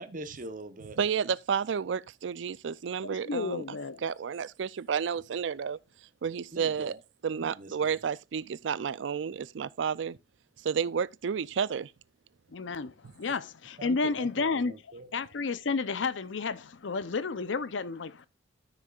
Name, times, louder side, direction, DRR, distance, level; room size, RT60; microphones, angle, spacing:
voice 1, 0.0-1.0 6.5-7.0 7.3-8.0 13.8-15.1, right 2 dB, 45° right, 0.9 m, -43 dB
voice 2, 1.0-3.8 4.0-5.8 6.2-7.0 7.2-10.2 10.6-11.9, right 7 dB, 70° right, 0.4 m, -31 dB
voice 3, 3.0-4.0 12.5-14.7 15.1-18.3, left 4 dB, 75° left, 0.6 m, -31 dB
13.0 x 6.5 x 2.4 m
head